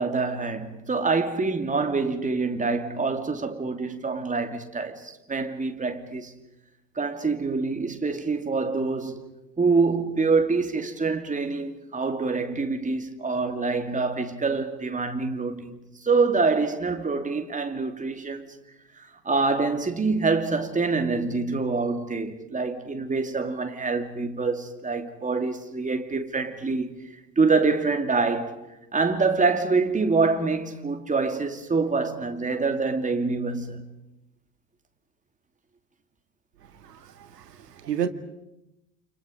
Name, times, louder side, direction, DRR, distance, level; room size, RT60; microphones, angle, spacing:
voice 1, 0.0-6.3 7.0-9.3 9.6-18.5 19.0-28.6 28.9-33.9, right 4 dB, 15° right, 2.7 m, -26 dB
voice 2, 36.8-38.1, right 9 dB, 75° right, 1.9 m, -31 dB
29.5 x 28.5 x 5.2 m
figure-of-eight pair, 75°, 49 cm